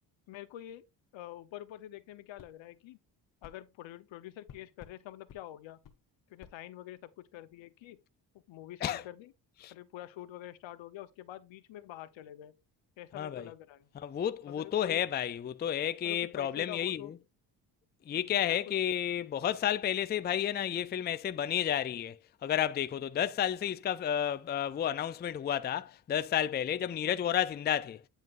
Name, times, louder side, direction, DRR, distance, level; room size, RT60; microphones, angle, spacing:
voice 1, 0.3-0.8 1.1-3.0 3.4-5.8 6.3-8.0 8.5-9.3 9.7-12.5 13.0-13.9 14.5-15.0 16.0-17.1 18.4-18.6 19.1-19.3, left 13 dB, 80° left, 1.0 m, -46 dB
sound 1, 2.4-2.5 3.4-3.6 4.5-5.0 5.3-5.4 5.8-6.0 6.4-6.6, left 8 dB, 45° left, 1.0 m, -53 dB
voice 2, 13.1-13.5 14.0-17.1 18.1-28.0, left 10 dB, 25° left, 0.4 m, -31 dB
9.2 x 5.7 x 2.5 m
cardioid pair, 110°, 45 cm